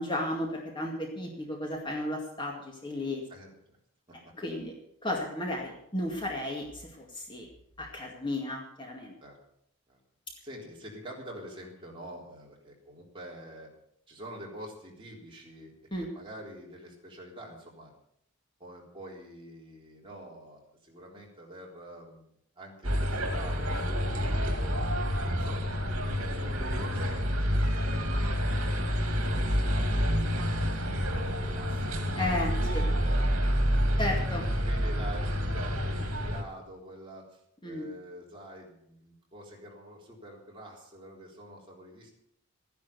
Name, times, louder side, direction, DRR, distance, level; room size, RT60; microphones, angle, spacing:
voice 1, 0.0-3.2 4.1-4.7 5.0-7.5 7.8-9.1 15.9-16.1 32.2-32.8 34.0-34.4 37.6-37.9, left 1 dB, 20° left, 0 dB, 2.1 m, -34 dB
voice 2, 3.3-3.8 4.1-4.2 9.2-9.4 9.9-10.0 10.4-13.7 14.1-15.7 16.0-17.9 18.6-22.3 22.6-24.9 25.3-32.0 32.6-33.8 34.6-42.1, right 1 dB, 25° right, -2 dB, 3.8 m, -47 dB
sound 1, 22.8-36.4, equal, 70° right, 2.7 m, -28 dB
14.5 x 10.5 x 7.0 m, 0.73 s
head